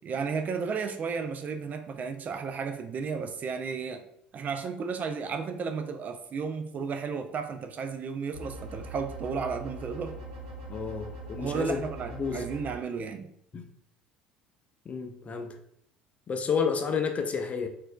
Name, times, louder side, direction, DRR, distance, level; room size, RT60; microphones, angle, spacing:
voice 1, 0.0-4.0 4.3-10.2 11.4-13.3, right 5 dB, 40° right, 7 dB, 0.4 m, -33 dB
sound 1, 8.3-12.7, right 1 dB, 70° right, 0.9 m, -41 dB
voice 2, 10.7-11.8 12.1-12.4 13.5-13.6 14.9-15.6 16.3-17.7, left 6 dB, 30° left, 6 dB, 0.5 m, -30 dB
4.1 x 2.5 x 2.3 m, 0.71 s
figure-of-eight pair, 65°, 4 cm